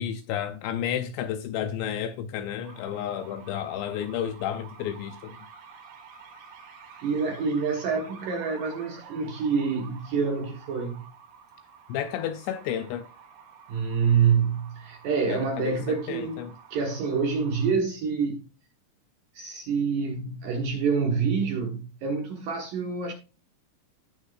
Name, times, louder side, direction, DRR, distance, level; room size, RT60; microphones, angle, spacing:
voice 1, 0.0-5.4 11.9-13.1 15.3-15.8 16.1-16.5, left 9 dB, 85° left, 2.5 m, -31 dB
sound 1, 2.6-17.7, right 6 dB, 65° right, 4.1 m, -49 dB
voice 2, 7.0-11.1 13.7-18.4 19.3-23.1, right 5 dB, 85° right, 1.9 m, -27 dB
17.5 x 6.5 x 2.3 m
omnidirectional pair, 5.8 m